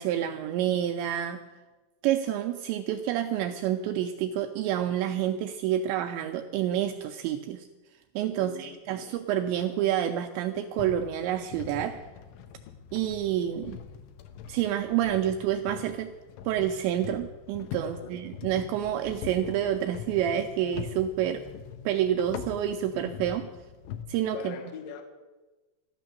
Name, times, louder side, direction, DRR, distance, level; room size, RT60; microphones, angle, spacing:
voice 1, 0.0-1.4 2.0-7.7 8.2-12.0 12.9-13.8 14.5-16.1 16.5-21.4 21.9-23.5 24.1-24.6, right 11 dB, 85° right, 6 dB, 2.6 m, -28 dB
voice 2, 8.4-9.2 17.8-18.1 24.3-25.0, left 6 dB, 65° left, 4 dB, 2.3 m, -41 dB
sound 1, 10.8-24.0, left 8 dB, 80° left, 3.0 m, -43 dB
13.5 x 12.5 x 6.7 m, 1.2 s
omnidirectional pair, 5.8 m